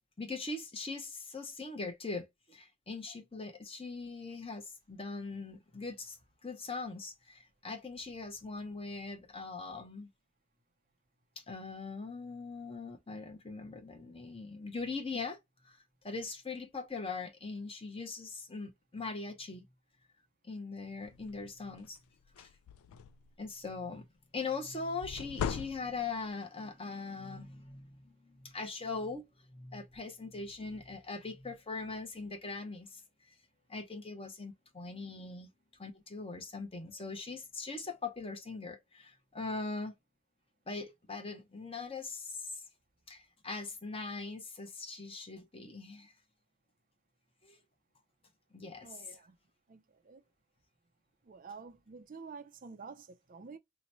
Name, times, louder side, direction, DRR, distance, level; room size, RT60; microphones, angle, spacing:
voice 1, 0.2-6.2 6.4-10.1 11.4-15.4 15.6-15.8 16.0-19.6 20.4-22.0 22.4-22.5 23.4-24.0 24.3-33.0 33.7-35.5 35.8-39.9 40.7-42.6 43.1-46.1 47.4-47.6 48.5-49.2, left 3 dB, 25° left, 0.8 m, -41 dB
sound 1, 21.1-21.4 21.8-22.0 22.2-23.3 25.0-26.3, left 8 dB, 85° left, 0.3 m, -39 dB
voice 2, 48.8-49.3 49.7-50.2 51.3-53.6, right 5 dB, 40° right, 0.4 m, -49 dB
3.0 x 2.1 x 4.0 m
head